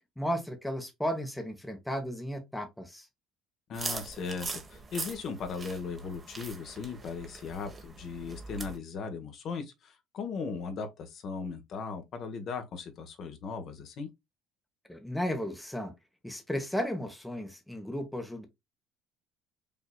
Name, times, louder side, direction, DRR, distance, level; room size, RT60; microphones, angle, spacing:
voice 1, 0.2-3.1 14.9-15.9 16.2-18.5, equal, 5° left, 1.0 m, -34 dB
voice 2, 3.7-14.1, left 5 dB, 50° left, 1.2 m, -38 dB
sound 1, 3.7-8.8, right 4 dB, 25° right, 1.0 m, -41 dB
5.4 x 2.8 x 2.2 m
cardioid pair, 120°, 0 cm